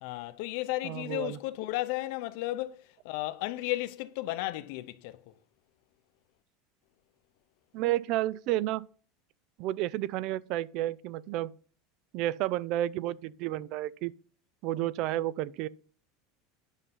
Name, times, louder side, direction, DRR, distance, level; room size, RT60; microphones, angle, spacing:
voice 1, 0.0-5.2, left 17 dB, 55° left, 0.7 m, -34 dB
voice 2, 0.8-1.4 7.7-8.9 9.6-11.5 12.1-14.1 14.6-15.7, right 14 dB, 40° right, 0.3 m, -31 dB
9.9 x 5.5 x 5.4 m
supercardioid pair, 175°, 0 cm